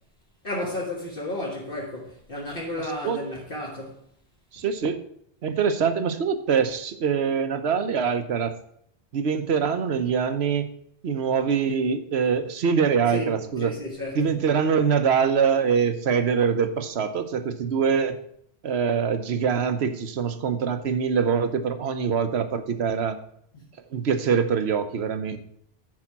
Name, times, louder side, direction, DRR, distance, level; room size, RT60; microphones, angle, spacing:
voice 1, 0.4-4.0 13.1-14.3 23.5-23.7, left 1 dB, 60° left, 2.0 m, -32 dB
voice 2, 4.5-5.0 5.4-8.5 9.1-10.7 11.0-13.7 14.1-18.2 18.6-23.2 23.9-25.4, right 6 dB, 80° right, 1.1 m, -24 dB
11.0 x 4.9 x 5.9 m
omnidirectional pair, 1.1 m